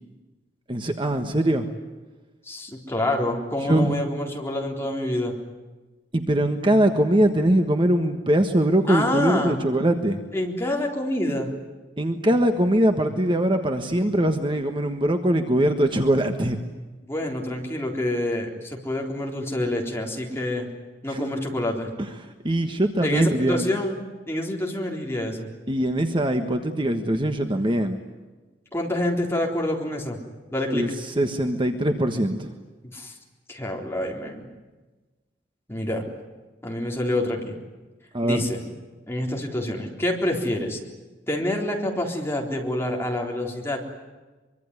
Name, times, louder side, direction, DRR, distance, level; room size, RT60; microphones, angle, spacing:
voice 1, 0.7-1.7 3.7-3.9 6.1-10.2 12.0-16.6 21.1-21.3 22.4-23.6 25.7-28.0 30.7-30.9 31.2-32.5 38.1-38.4, right 1 dB, 25° right, 6 dB, 1.4 m, -22 dB
voice 2, 2.5-5.3 8.9-9.6 10.3-11.5 17.0-20.7 21.0-21.9 23.0-24.0 24.3-25.5 28.7-30.2 30.5-30.9 32.9-33.2 33.5-34.4 35.7-36.0 36.6-37.6 38.2-38.6 39.1-40.8 41.3-43.8, left 1 dB, 15° left, 0 dB, 3.9 m, -27 dB
24.5 x 24.0 x 9.7 m, 1.2 s
head